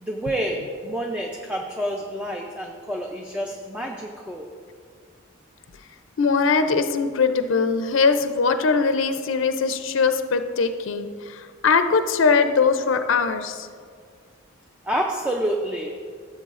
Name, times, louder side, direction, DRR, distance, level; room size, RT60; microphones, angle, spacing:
voice 1, 0.0-4.5 14.8-15.9, right 1 dB, 5° right, 1 dB, 0.4 m, -28 dB
voice 2, 6.2-13.7, left 5 dB, 70° left, 9 dB, 0.4 m, -21 dB
14.5 x 7.4 x 2.5 m, 2.1 s
head